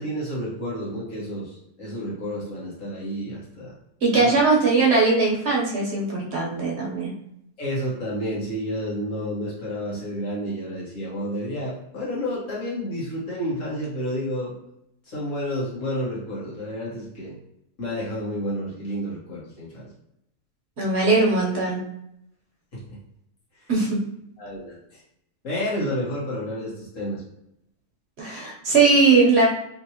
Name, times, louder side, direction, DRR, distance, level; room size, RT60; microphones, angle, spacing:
voice 1, 0.0-3.7 4.1-4.3 7.6-14.5 15.1-17.3 17.8-19.9 22.7-22.8 24.4-25.0 25.4-27.2, equal, 65° left, -6 dB, 1.7 m, -30 dB
voice 2, 4.0-7.1 20.8-21.8 23.7-24.0 28.2-29.5, right 3 dB, 55° right, -3 dB, 1.0 m, -20 dB
3.3 x 2.9 x 2.8 m, 0.78 s
omnidirectional pair, 1.4 m